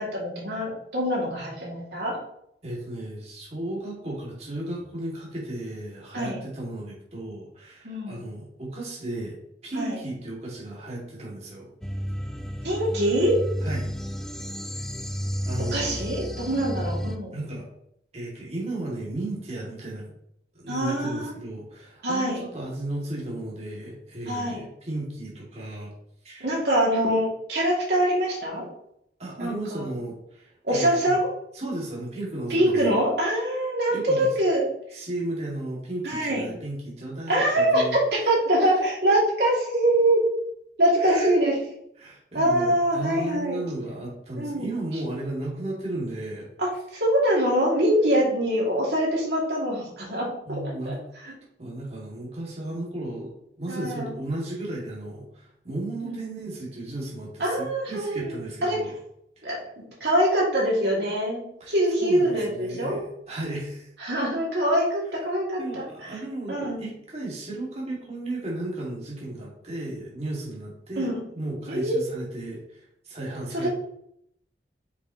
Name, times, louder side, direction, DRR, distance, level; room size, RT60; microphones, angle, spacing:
voice 1, 0.0-2.2 6.1-6.4 7.8-8.2 9.7-10.0 12.6-13.4 15.7-17.3 20.7-21.3 22.0-22.4 24.3-24.6 26.4-28.7 29.4-29.9 30.6-31.3 32.5-34.7 36.0-36.5 37.3-40.2 40.8-41.6 42.3-43.6 44.4-44.7 46.6-50.9 51.2-51.3 53.7-54.1 56.0-56.3 57.4-58.8 59.4-59.6 60.0-63.0 64.0-65.9 66.5-66.8 71.0-71.2 71.7-72.0 73.5-73.7, right 1 dB, 70° right, -4 dB, 2.5 m, -24 dB
voice 2, 2.6-9.4 9.6-11.7 13.6-13.9 15.4-16.0 17.3-17.7 18.1-20.1 20.5-25.9 26.2-26.5 29.2-31.1 31.5-32.9 33.9-34.3 34.9-38.0 38.6-38.7 41.0-41.3 42.0-46.5 50.5-51.0 51.6-58.9 59.4-59.5 61.6-61.7 62.0-63.9 65.2-71.1 71.3-73.7, right 1 dB, 35° right, -4 dB, 2.3 m, -34 dB
sound 1, 11.8-17.2, equal, 5° left, 0.4 m, -32 dB
6.8 x 5.6 x 3.0 m, 0.73 s
head